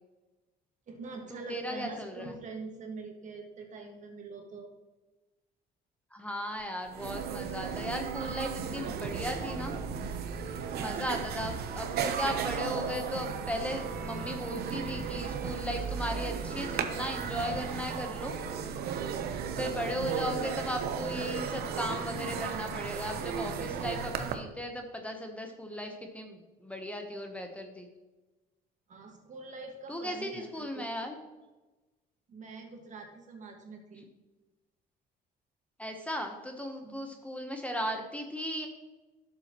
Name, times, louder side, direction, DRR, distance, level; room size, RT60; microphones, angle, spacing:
voice 1, 0.9-4.7 28.9-31.2 32.3-34.0 36.8-37.1, right 3 dB, 45° right, 3 dB, 1.7 m, -44 dB
voice 2, 1.5-2.3 6.1-9.8 10.8-18.3 19.5-27.9 29.9-31.2 35.8-38.7, equal, 10° left, 3 dB, 0.9 m, -36 dB
sound 1, 6.6-6.7 6.9-24.3, right 6 dB, 70° right, 0.9 m, -35 dB
11.5 x 7.1 x 3.0 m, 1.2 s
cardioid pair, 110°, 17 cm